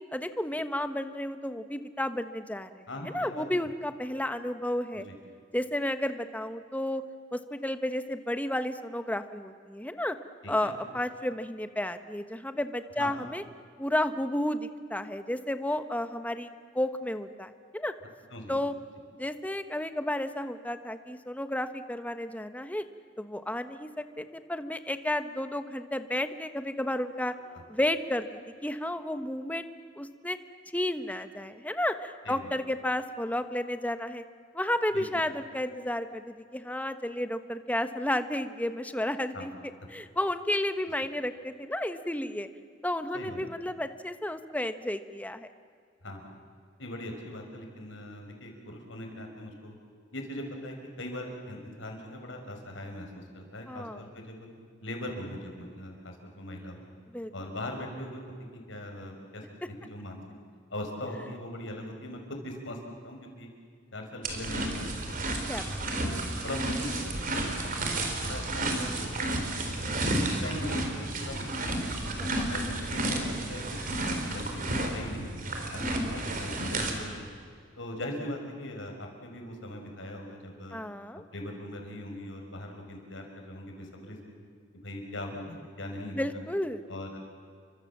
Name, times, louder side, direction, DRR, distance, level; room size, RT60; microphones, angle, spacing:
voice 1, 0.1-5.1 5.5-7.0 7.3-10.2 10.5-13.4 13.8-16.5 16.7-17.9 18.5-18.7 19.2-22.8 23.2-27.3 27.7-29.7 30.0-30.4 30.7-34.2 34.5-39.5 39.9-42.5 42.8-45.5 53.7-54.1 57.1-57.3 65.5-65.8 72.2-72.3 75.8-76.1 80.7-81.2 86.1-86.8, left 1 dB, 10° left, 9 dB, 1.2 m, -32 dB
voice 2, 2.9-3.4 4.9-5.2 10.4-10.7 13.0-13.1 18.3-18.6 27.4-27.6 32.2-32.5 34.9-35.0 39.3-39.5 43.1-43.4 46.0-46.4 46.8-49.7 50.1-54.5 54.8-56.8 57.3-58.2 58.5-60.2 60.7-62.8 63.0-63.5 63.9-65.2 65.9-69.8 70.2-72.1 72.5-73.8 74.2-75.3 75.7-77.2 77.8-80.8 81.3-84.3 84.8-86.4 86.9-87.2, left 1 dB, 90° left, 3 dB, 5.5 m, -40 dB
sound 1, 64.2-76.9, right 1 dB, 45° right, 4.0 m, -32 dB
29.5 x 24.5 x 7.4 m, 2.1 s
head